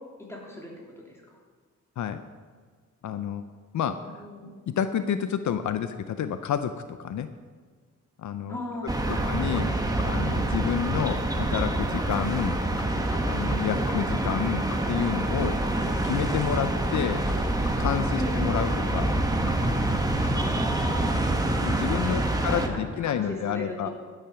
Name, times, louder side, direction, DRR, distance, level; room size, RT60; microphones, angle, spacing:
voice 1, 0.3-0.7 1.0-1.2 4.0-4.6 8.5-9.3 13.7-13.9 15.7-15.9 18.2-18.4 20.3-21.3 21.9-23.9, left 1 dB, 10° left, -3 dB, 3.0 m, -37 dB
voice 2, 3.0-3.4 3.7-4.2 4.7-7.3 8.2-8.6 9.1-9.8 10.0-12.6 13.2-15.6 16.0-17.3 17.8-19.1 21.6-23.9, left 8 dB, 70° left, 10 dB, 0.6 m, -29 dB
sound 1, 8.9-22.7, right 1 dB, 10° right, 1.1 m, -26 dB
sound 2, 9.1-9.2 9.5-9.6 10.0-10.1 10.4-10.5 10.8-10.9 11.1-11.2 11.6-11.7 12.0-12.1 12.4-12.5 12.8-13.2 13.5-13.6 13.9-14.0 14.3-14.4 14.7-14.8 15.1-15.2 15.4-15.5 15.8-15.9 16.2-16.3 16.5-16.6 16.9-17.0 17.3-17.4 17.6-17.7 18.0-18.1 18.3-18.4 18.7-18.8 19.1-19.2 19.5-19.6 19.8-19.9 20.2-20.3 20.6-20.7, left 7 dB, 55° left, 0.9 m, -42 dB
12.5 x 9.0 x 5.8 m, 1.5 s
wide cardioid pair, 135°, 30 cm